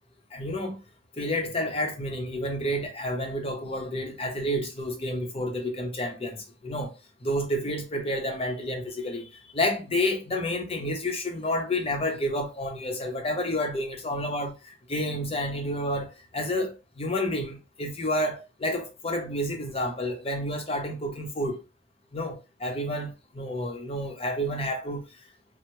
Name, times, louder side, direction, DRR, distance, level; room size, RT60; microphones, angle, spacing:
voice 1, 0.3-0.8 1.2-6.9 7.2-21.6 22.1-25.0, left 1 dB, 30° left, 0.7 m, -30 dB
3.3 x 2.1 x 2.9 m
head